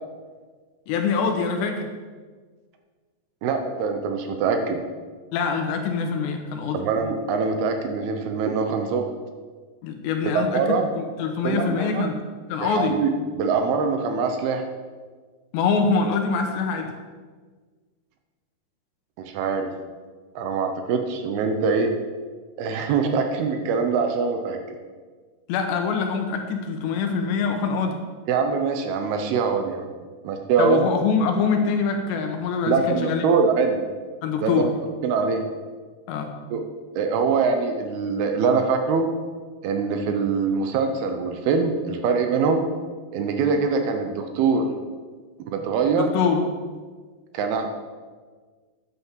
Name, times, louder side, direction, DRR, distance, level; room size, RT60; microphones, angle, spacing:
voice 1, 0.9-1.9 5.3-6.9 9.8-10.6 11.0-12.2 12.5-12.9 15.5-16.9 25.5-28.0 30.6-33.2 34.2-34.7 36.1-36.3 45.9-46.4, left 5 dB, 75° left, 4 dB, 2.9 m, -24 dB
voice 2, 3.4-4.8 6.7-9.1 10.3-10.8 11.4-12.1 12.6-14.6 19.2-19.7 20.4-22.0 22.6-24.6 28.3-29.9 30.2-30.8 32.7-33.8 34.4-34.7 35.0-35.4 36.5-36.6 37.0-39.1 39.6-42.7 43.1-44.7 45.5-46.1 47.3-47.7, right 5 dB, 80° right, 5 dB, 2.2 m, -23 dB
10.0 x 8.5 x 7.4 m, 1.5 s
omnidirectional pair, 5.7 m